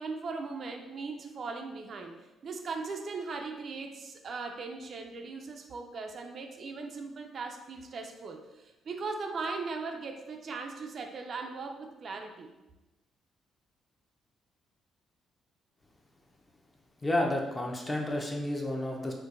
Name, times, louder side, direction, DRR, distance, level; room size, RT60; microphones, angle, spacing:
voice 1, 0.0-12.5, right 4 dB, 50° right, 3 dB, 0.4 m, -39 dB
voice 2, 17.0-19.1, left 1 dB, 20° left, 0 dB, 0.6 m, -31 dB
4.4 x 2.2 x 2.5 m, 1.0 s
cardioid pair, 90°, 0 cm